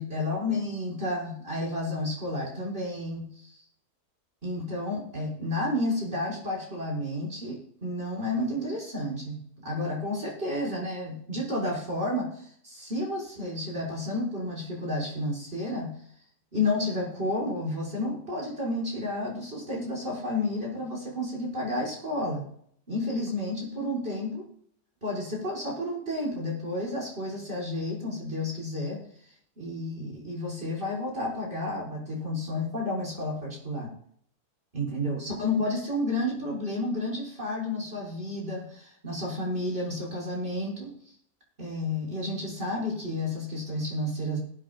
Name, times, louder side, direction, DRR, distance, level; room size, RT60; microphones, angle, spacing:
voice 1, 0.0-3.6 4.4-15.9 16.5-22.5 22.9-24.4 25.0-29.0 29.6-33.9 34.7-40.9 41.6-44.4, left 1 dB, 35° right, -4 dB, 5.9 m, -31 dB
21.0 x 8.8 x 2.4 m, 0.63 s
omnidirectional pair, 1.8 m